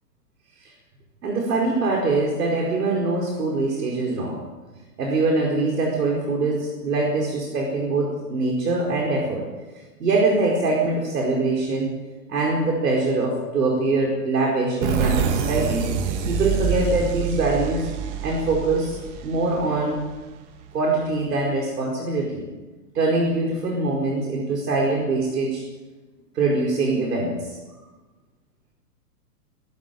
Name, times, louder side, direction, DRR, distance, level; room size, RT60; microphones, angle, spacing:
voice 1, 1.2-4.4 5.0-9.5 10.0-11.9 12.3-15.9 16.3-17.9 18.2-20.0 20.7-22.4 22.9-25.7 26.3-27.6, right 3 dB, 75° right, -1 dB, 4.8 m, -23 dB
sound 1, 14.8-20.3, right 7 dB, 45° right, 2.4 m, -26 dB
21.0 x 13.5 x 9.2 m, 1.2 s
hypercardioid pair, 125°, 48 cm